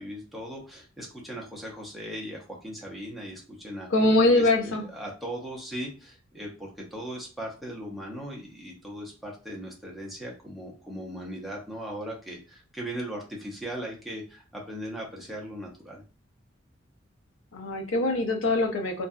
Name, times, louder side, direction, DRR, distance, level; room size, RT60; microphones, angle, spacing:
voice 1, 0.0-3.9 4.3-16.0, equal, ahead, -3 dB, 0.6 m, -38 dB
voice 2, 3.9-4.8 17.5-19.1, left 2 dB, 75° left, 3 dB, 0.6 m, -23 dB
2.6 x 2.3 x 2.3 m, 0.35 s
head